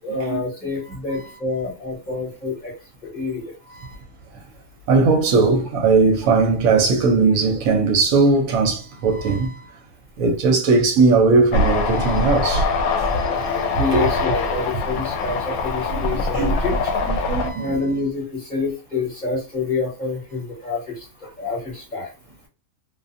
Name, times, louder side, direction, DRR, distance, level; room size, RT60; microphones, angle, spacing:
voice 1, 0.0-2.7 3.0-3.5 13.2-16.9 17.3-22.1, left 3 dB, 30° left, 1.3 m, -27 dB
voice 2, 4.9-9.7 10.2-12.7 16.3-16.5 17.1-17.7, right 4 dB, 75° right, 1.0 m, -18 dB
sound 1, 11.5-17.5, left 3 dB, 80° left, 1.0 m, -23 dB
2.6 x 2.4 x 2.4 m
omnidirectional pair, 1.5 m